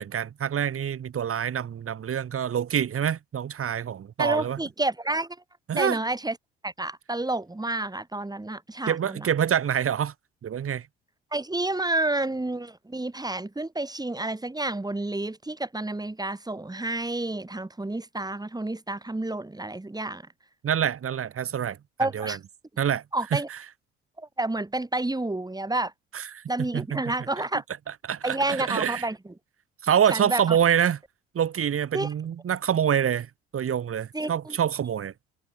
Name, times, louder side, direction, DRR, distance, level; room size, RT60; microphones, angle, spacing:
voice 1, 0.0-4.6 5.7-6.0 8.9-10.1 10.4-10.9 20.6-21.8 22.1-22.4 22.8-23.0 23.3-23.4 26.1-27.0 28.1-29.1 29.8-31.0 31.3-35.1, right 9 dB, 45° right, 7.6 m, -26 dB
voice 2, 4.2-5.4 5.8-6.4 6.6-9.3 11.3-20.2 22.0-22.4 23.1-23.5 24.2-25.9 26.5-27.6 28.2-29.3 30.1-30.6 31.9-32.1 34.1-34.6, right 2 dB, 15° right, 7.4 m, -29 dB
hypercardioid pair, 55°, 30 cm